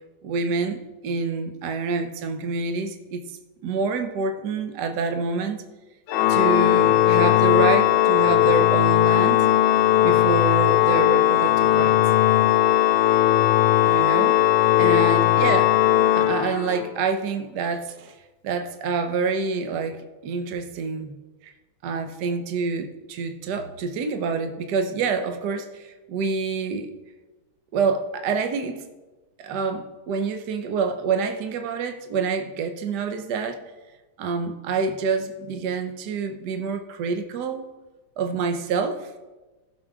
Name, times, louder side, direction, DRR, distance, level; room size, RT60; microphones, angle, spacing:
voice 1, 0.2-3.4 3.6-5.6 6.3-9.5 10.0-12.0 13.8-14.3 14.8-15.7 16.1-18.1 18.4-21.2 21.8-26.9 27.7-28.9 29.4-33.6 34.2-37.7 38.2-39.1, right 5 dB, 60° right, 7 dB, 1.3 m, -27 dB
Organ, 6.1-17.0, left 13 dB, 75° left, 1.1 m, -18 dB
15.5 x 6.7 x 3.6 m, 1.1 s
omnidirectional pair, 2.4 m